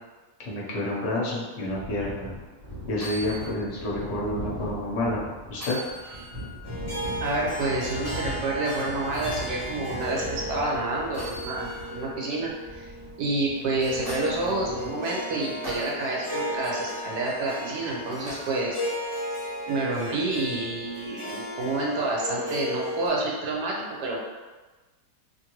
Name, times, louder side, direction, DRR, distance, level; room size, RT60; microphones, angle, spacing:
voice 1, 0.4-2.3 2.9-5.2 5.5-5.8, left 1 dB, 50° left, -4 dB, 0.9 m, -29 dB
sound 1, 1.6-14.9, left 1 dB, 35° right, 1.0 m, -40 dB
sound 2, 2.9-3.6 4.0-4.1 5.5-6.6 9.1-9.4 11.1-12.1 13.6-14.5 15.6-16.1 18.2-18.6 20.4-20.5, equal, 20° right, 0.5 m, -39 dB
Harp, 6.6-23.1, equal, 25° left, 0.7 m, -35 dB
voice 2, 7.2-12.9 13.2-18.8 19.7-23.7 24.0-24.2, right 2 dB, 75° right, -3 dB, 1.3 m, -28 dB
2.9 x 2.6 x 2.9 m, 1.2 s
omnidirectional pair, 1.8 m